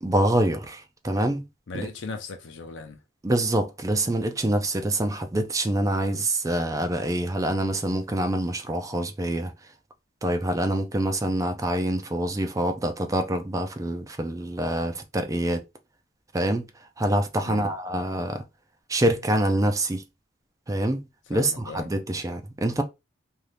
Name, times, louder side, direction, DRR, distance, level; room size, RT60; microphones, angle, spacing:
voice 1, 0.0-1.4 1.7-1.9 3.2-9.5 10.2-15.6 16.3-16.7 17.0-18.4 18.9-20.0 20.7-21.0 21.3-22.8, right 1 dB, 15° right, 0.4 m, -25 dB
voice 2, 1.7-3.0 17.4-17.7 21.3-21.9, left 4 dB, 65° left, 0.6 m, -38 dB
2.7 x 2.4 x 3.3 m
head